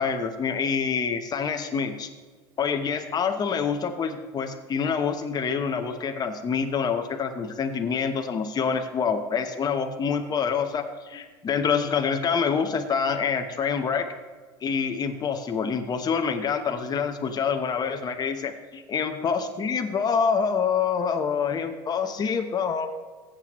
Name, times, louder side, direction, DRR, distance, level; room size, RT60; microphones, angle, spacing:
voice 1, 0.0-2.1 2.6-14.1 14.6-22.9, left 6 dB, 30° left, 5 dB, 0.9 m, -26 dB
14.5 x 7.6 x 3.1 m, 1.4 s
hypercardioid pair, 95°, 14 cm